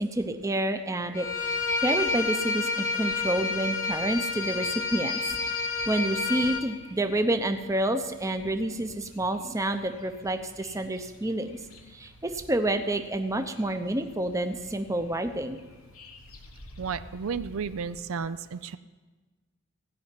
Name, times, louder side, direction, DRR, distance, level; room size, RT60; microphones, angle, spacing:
voice 1, 0.0-5.3 5.9-11.6 11.9-15.6, right 1 dB, 15° right, 7 dB, 0.7 m, -29 dB
Bowed string instrument, 1.1-6.6, left 4 dB, 40° left, 1.2 m, -29 dB
sound 1, 1.2-18.0, left 5 dB, 80° left, 1.4 m, -46 dB
voice 2, 16.8-18.8, right 6 dB, 70° right, 13 dB, 0.4 m, -33 dB
16.5 x 5.6 x 9.1 m, 1.3 s
head